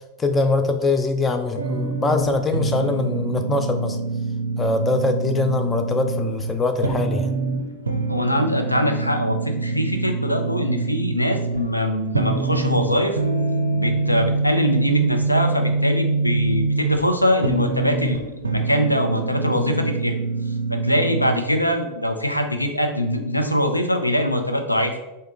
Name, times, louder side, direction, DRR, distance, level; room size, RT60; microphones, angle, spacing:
voice 1, 0.2-4.0 4.6-7.3 19.5-19.7, left 3 dB, 15° left, 6 dB, 0.3 m, -23 dB
sound 1, 1.6-21.4, right 3 dB, 75° right, 0.4 m, -25 dB
voice 2, 8.1-13.2 13.7-20.2 20.7-25.0, equal, 85° left, 5 dB, 0.4 m, -22 dB
3.5 x 2.7 x 3.5 m, 1.0 s
figure-of-eight pair, 90°, 0 cm